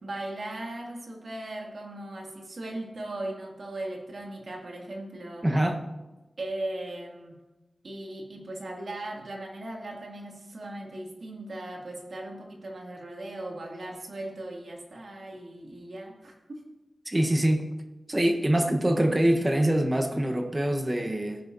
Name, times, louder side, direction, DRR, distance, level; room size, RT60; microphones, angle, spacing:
voice 1, 0.0-5.5 6.4-7.4 7.8-16.8, right 1 dB, 70° right, -1 dB, 2.3 m, -38 dB
voice 2, 5.4-5.8 17.1-17.7 18.1-21.4, right 1 dB, 25° right, 3 dB, 1.1 m, -24 dB
15.5 x 10.0 x 2.7 m, 1.1 s
wide cardioid pair, 70°, 0 cm